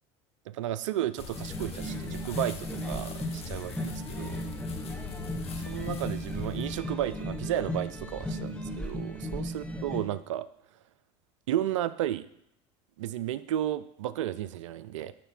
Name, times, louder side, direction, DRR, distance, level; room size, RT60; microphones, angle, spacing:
voice 1, 0.5-4.4 5.7-10.5 11.5-12.3 13.0-15.1, right 12 dB, 90° right, 15 dB, 0.4 m, -33 dB
sound 1, 1.2-6.8, left 6 dB, 40° left, 1.5 m, -42 dB
sound 2, 1.3-10.0, equal, 5° left, 2.1 m, -36 dB
11.0 x 4.1 x 5.9 m, 0.74 s
supercardioid pair, 90°, 15 cm